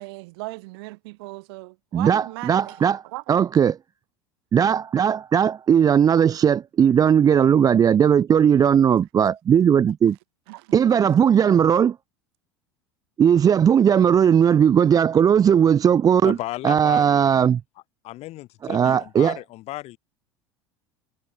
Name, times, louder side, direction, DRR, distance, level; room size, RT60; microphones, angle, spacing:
voice 1, 0.0-3.4 10.5-10.7, right 24 dB, 60° right, 5.9 m, -38 dB
voice 2, 1.9-3.0 3.3-3.8 4.5-10.2 10.7-12.0 13.2-16.4 16.6-17.6 18.6-19.4, right 8 dB, 25° right, 0.5 m, -18 dB
voice 3, 16.2-17.1 18.0-20.0, left 17 dB, 50° left, 1.5 m, -34 dB
figure-of-eight pair, 75°, 14 cm